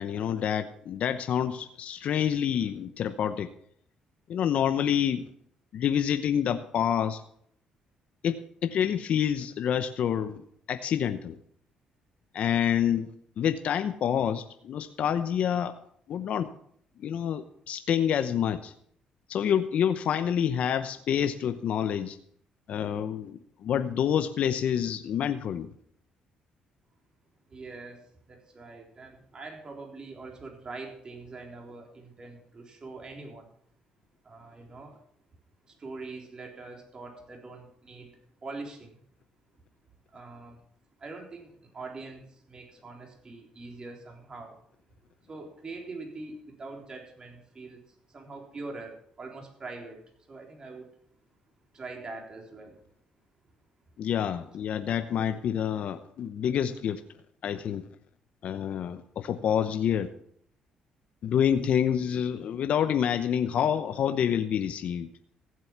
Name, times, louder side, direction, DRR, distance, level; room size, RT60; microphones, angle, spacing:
voice 1, 0.0-3.5 4.3-5.3 5.7-7.2 8.2-11.4 12.3-13.1 13.4-15.8 16.1-16.5 17.0-18.7 19.3-22.2 22.7-25.7 54.0-57.0 57.4-57.9 58.4-60.1 61.2-65.1, left 9 dB, 60° left, 9 dB, 0.8 m, -27 dB
voice 2, 27.5-33.5 34.2-35.0 35.6-39.0 40.1-40.6 41.0-44.6 45.3-50.0 50.3-50.9 51.7-52.8, right 3 dB, 35° right, 1 dB, 3.7 m, -43 dB
15.5 x 7.7 x 6.0 m, 0.66 s
cardioid pair, 90°, 2 cm